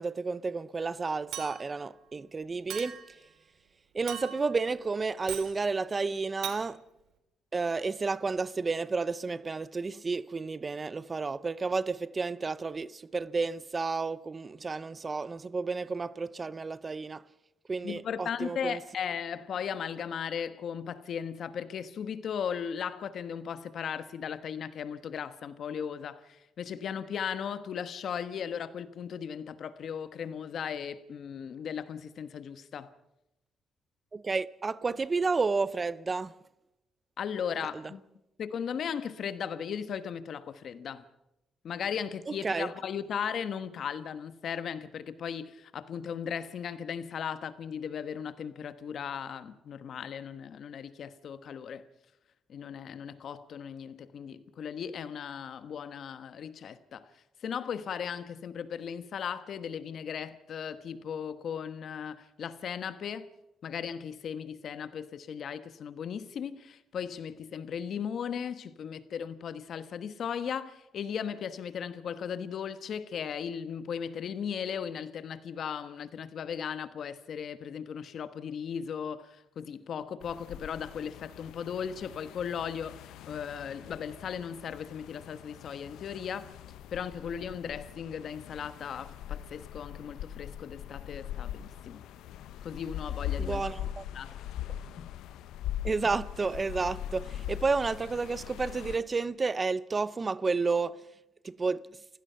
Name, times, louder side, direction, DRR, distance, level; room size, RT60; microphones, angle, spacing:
voice 1, 0.0-3.0 3.9-6.8 7.5-17.2 17.7-18.8 34.1-36.3 42.3-42.7 93.4-94.1 95.8-101.0 101.4-101.9, right 4 dB, 30° right, 0.6 m, -31 dB
Chink clink, 1.3-1.8 2.7-3.2 4.1-4.6 5.3-5.5 6.4-6.6, right 10 dB, 85° right, 2.2 m, -39 dB
voice 2, 17.8-32.9 37.2-38.0 38.4-41.0 41.6-51.8 52.5-57.1 57.4-63.3 63.6-83.0 83.3-86.5 86.9-92.0 92.6-93.6 94.1-94.3 95.0-95.1, left 7 dB, 60° left, 1.2 m, -37 dB
sound 1, 80.2-99.0, left 11 dB, 85° left, 0.7 m, -41 dB
29.5 x 16.0 x 5.7 m
cardioid pair, 90°, 0 cm